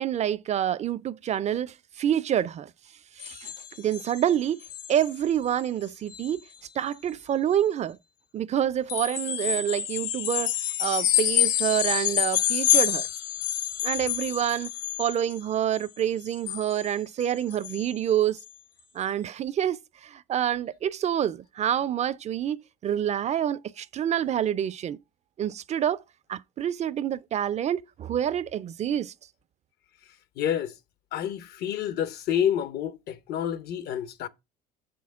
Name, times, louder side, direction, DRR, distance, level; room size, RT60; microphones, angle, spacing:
voice 1, 0.0-2.7 3.2-3.5 3.8-4.6 4.9-6.4 6.8-8.0 8.3-10.5 10.8-13.1 13.8-14.7 15.0-18.4 18.9-25.0 25.4-26.0 26.3-29.1, right 10 dB, 40° right, 0.4 m, -27 dB
sound 1, 3.2-4.3 4.6-5.2 5.5-5.7 6.1-6.3 8.9-15.4 15.7-16.9 17.2-17.3 17.5-17.9 18.4-18.5, left 12 dB, 85° left, 1.0 m, -28 dB
voice 2, 30.4-30.7 31.1-34.3, left 9 dB, 60° left, 0.8 m, -28 dB
7.1 x 6.1 x 3.6 m
supercardioid pair, 95°, 18 cm